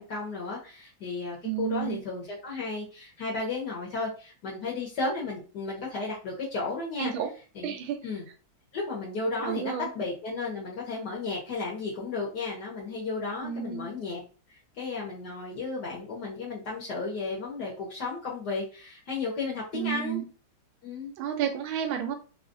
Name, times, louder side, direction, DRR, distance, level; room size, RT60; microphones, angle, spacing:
voice 1, 0.0-7.1 7.5-7.7 8.0-8.3 8.7-14.2 14.5-20.2 20.8-21.1, left 3 dB, 60° left, -4 dB, 1.4 m, -34 dB
voice 2, 1.4-2.0 7.0-7.3 7.6-8.0 9.4-9.9 13.4-13.9 19.7-20.3 21.2-22.1, right 9 dB, 85° right, 5 dB, 1.5 m, -31 dB
3.6 x 2.4 x 2.5 m, 0.36 s
omnidirectional pair, 2.2 m